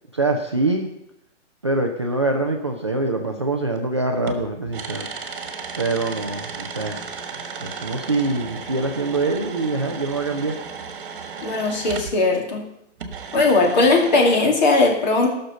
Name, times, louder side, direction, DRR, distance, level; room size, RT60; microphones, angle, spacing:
voice 1, 0.1-0.9 1.6-5.1 5.8-7.0 7.6-10.5, right 2 dB, 25° right, 1 dB, 0.4 m, -24 dB
sound 1, 4.3-12.2 13.0-14.4, right 5 dB, 45° right, 1.6 m, -35 dB
voice 2, 11.4-12.6 13.3-15.3, left 3 dB, 35° left, 1 dB, 2.4 m, -18 dB
14.5 x 6.5 x 6.7 m, 0.82 s
hypercardioid pair, 165°, 38 cm